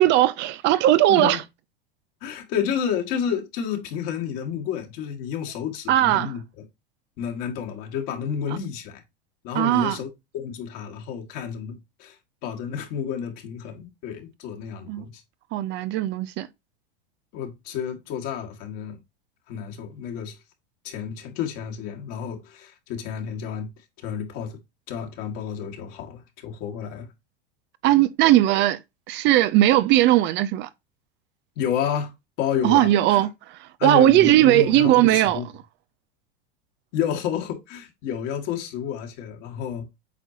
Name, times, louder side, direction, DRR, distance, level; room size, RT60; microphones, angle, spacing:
voice 1, 0.0-1.4 5.9-6.3 9.5-10.0 14.9-15.0 15.5-16.5 27.8-28.8 29.1-30.7 32.6-35.4, right 14 dB, 40° right, 0.4 m, -18 dB
voice 2, 1.1-1.4 2.2-6.4 7.2-9.0 9.4-10.1 10.3-12.2 12.4-15.2 17.3-19.0 19.5-20.4 20.8-23.7 24.0-24.6 24.9-27.1 31.6-33.2 33.8-35.5 36.9-39.9, left 8 dB, 55° left, 1.9 m, -30 dB
8.2 x 4.5 x 2.8 m
hypercardioid pair, 95°, 29 cm